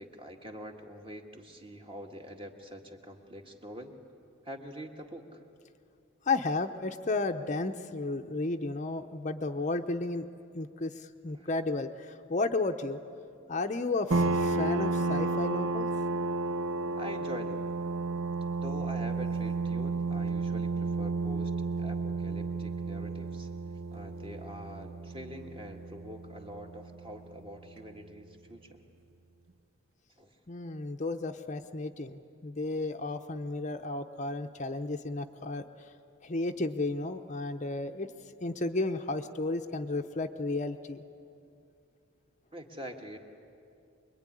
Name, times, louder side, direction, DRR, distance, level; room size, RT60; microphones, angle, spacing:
voice 1, 0.0-3.9 4.4-5.4 11.4-11.5 17.0-17.7 18.6-21.5 21.8-23.5 23.9-28.8 30.2-30.3 42.5-43.2, equal, 25° right, 3 dB, 1.8 m, -44 dB
voice 2, 6.3-10.3 10.5-13.0 13.5-15.9 30.5-35.6 36.2-38.1 38.4-41.0, left 3 dB, 35° left, 6 dB, 0.7 m, -33 dB
sound 1, 14.1-27.4, right 3 dB, 75° right, 0.8 m, -32 dB
25.5 x 22.0 x 9.9 m, 2.5 s
head